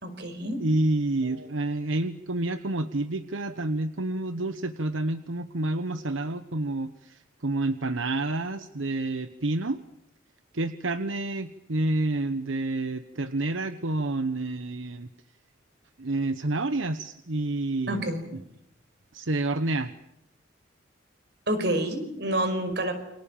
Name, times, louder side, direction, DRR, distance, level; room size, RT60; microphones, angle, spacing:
voice 1, 0.0-0.6 17.9-18.3 21.5-22.9, right 1 dB, 55° right, 9 dB, 5.2 m, -28 dB
voice 2, 0.6-9.8 10.5-15.1 16.0-18.1 19.1-19.9, right 2 dB, 85° right, 11 dB, 1.1 m, -29 dB
29.0 x 25.0 x 7.2 m, 0.78 s
head